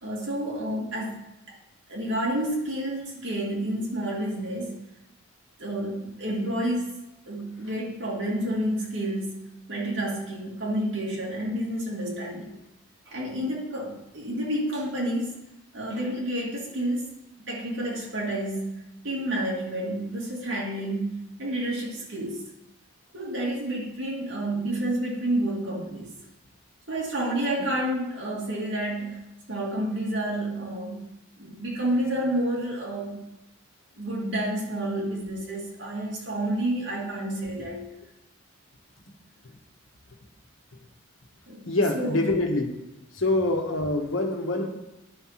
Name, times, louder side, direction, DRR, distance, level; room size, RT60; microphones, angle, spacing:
voice 1, 0.0-1.2 1.5-1.6 1.9-4.8 5.6-7.0 7.3-9.4 9.7-12.5 13.1-15.4 15.7-17.0 17.5-22.4 23.1-26.1 26.9-31.1 31.4-33.3 34.0-37.9 41.5-41.7 41.9-42.3, right 1 dB, 65° right, -3 dB, 2.4 m, -29 dB
voice 2, 41.7-42.7 43.1-44.7, left 2 dB, 80° left, 3 dB, 1.3 m, -25 dB
10.5 x 4.6 x 5.8 m, 0.92 s
head